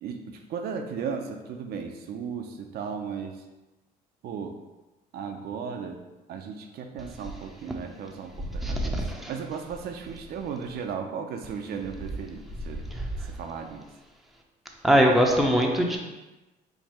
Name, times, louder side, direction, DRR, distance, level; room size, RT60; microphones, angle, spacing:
voice 1, 0.0-3.4 4.2-4.6 5.1-6.0 6.3-9.0 9.3-12.8 13.2-13.8, right 6 dB, 65° right, 4 dB, 0.6 m, -36 dB
voice 2, 8.6-9.3 12.9-13.3 14.8-16.0, equal, ahead, 0 dB, 0.6 m, -22 dB
4.6 x 2.6 x 4.3 m, 1.1 s
cardioid pair, 110°, 17 cm